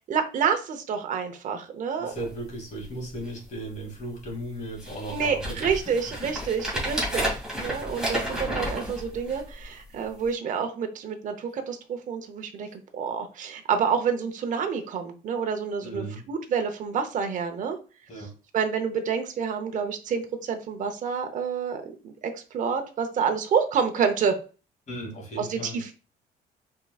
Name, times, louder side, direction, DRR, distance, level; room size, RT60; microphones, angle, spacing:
voice 1, 0.1-2.1 5.1-17.8 18.5-24.4 25.4-25.9, right 6 dB, 50° right, 6 dB, 0.8 m, -28 dB
voice 2, 2.0-5.6 5.9-6.3 15.8-16.2 18.1-18.3 24.9-25.8, right 1 dB, 45° left, -1 dB, 2.3 m, -36 dB
sound 1, 2.1-2.3 2.8-2.9 3.1-3.6 4.3-4.4 4.8-9.7 10.2-10.3, equal, 5° right, 2.2 m, -31 dB
4.7 x 3.7 x 2.3 m, 0.35 s
cardioid pair, 110°, 17 cm